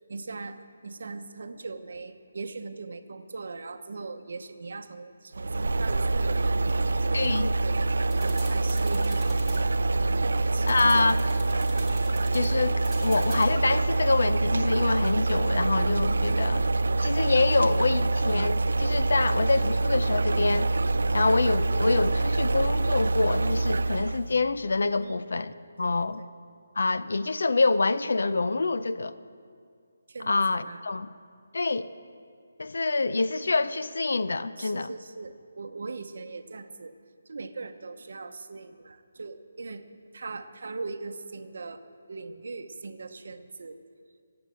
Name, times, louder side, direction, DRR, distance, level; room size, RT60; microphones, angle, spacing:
voice 1, 0.0-7.9 8.2-9.4 10.2-11.2 25.0-25.2 25.8-26.3 30.1-30.8 34.6-37.0 37.3-39.8 40.1-43.8, right 3 dB, 50° right, 8 dB, 0.8 m, -40 dB
sound 1, 5.3-24.3, right 2 dB, 70° right, 0.5 m, -25 dB
voice 2, 7.1-7.5 10.7-11.2 12.3-16.6 17.0-20.7 21.1-26.2 26.8-29.1 30.2-31.1 31.5-31.9 32.6-34.9, left 3 dB, 60° left, 13 dB, 0.5 m, -26 dB
sound 2, 8.1-13.5, right 2 dB, ahead, 1.6 m, -44 dB
18.0 x 7.9 x 7.7 m, 2.2 s
hypercardioid pair, 180°, 0 cm